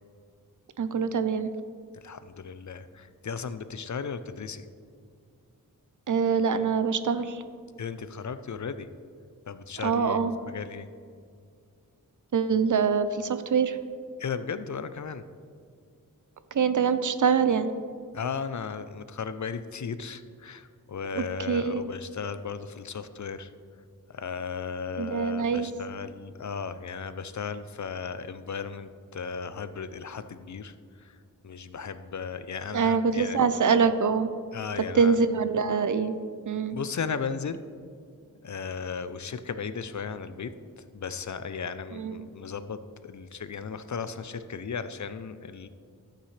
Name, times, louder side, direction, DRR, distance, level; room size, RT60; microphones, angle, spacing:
voice 1, 0.8-1.5 6.1-7.4 9.8-10.3 12.3-13.8 16.5-17.7 21.1-21.8 25.0-25.7 32.7-34.3 35.0-36.1 36.5-36.8 42.0-42.1, right 6 dB, 60° right, 11 dB, 0.6 m, -24 dB
voice 2, 1.9-4.7 7.8-8.9 9.5-10.9 14.2-15.2 18.1-23.5 24.1-31.1 31.4-33.4 34.5-35.2 36.7-37.6 38.4-40.5 40.9-45.7, left 6 dB, 55° left, 12 dB, 0.6 m, -36 dB
14.0 x 8.9 x 3.3 m, 2.2 s
wide cardioid pair, 80°, 35 cm